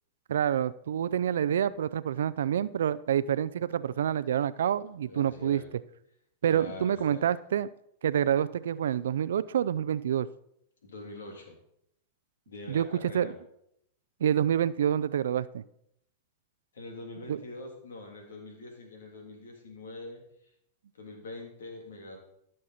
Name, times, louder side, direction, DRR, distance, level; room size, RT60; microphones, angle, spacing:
voice 1, 0.3-5.6 6.4-7.7 8.0-10.3 12.7-13.3 14.2-15.6 17.3-17.4, right 9 dB, 80° right, 16 dB, 0.4 m, -27 dB
voice 2, 5.1-5.7 6.5-7.3 10.8-11.6 12.5-13.3 16.7-20.2 21.0-22.2, left 2 dB, 90° left, 2 dB, 3.1 m, -44 dB
14.5 x 6.5 x 4.3 m, 0.75 s
hypercardioid pair, 125°, 0 cm